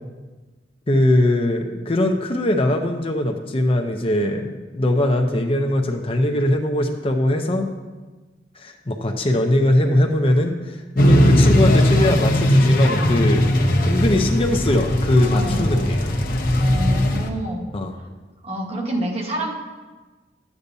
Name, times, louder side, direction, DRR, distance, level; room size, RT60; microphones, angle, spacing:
voice 1, 0.9-7.7 8.6-13.5 13.9-16.0 17.7-18.0, left 1 dB, 30° left, 4 dB, 0.7 m, -21 dB
sound 1, 11.0-17.3, left 1 dB, 55° left, 0.9 m, -18 dB
voice 2, 16.5-17.6 18.4-19.5, right 1 dB, 35° right, -1 dB, 1.4 m, -27 dB
12.5 x 8.3 x 2.7 m, 1.3 s
head